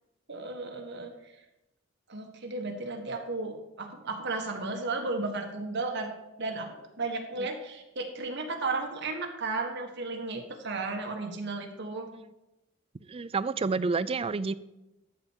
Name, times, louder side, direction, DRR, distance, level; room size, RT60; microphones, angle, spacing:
voice 1, 0.3-1.1 2.1-6.1 6.4-12.1, right 3 dB, 60° right, 3 dB, 1.6 m, -34 dB
voice 2, 13.1-14.5, right 4 dB, 30° right, 15 dB, 0.4 m, -29 dB
13.0 x 4.4 x 7.3 m, 0.95 s
head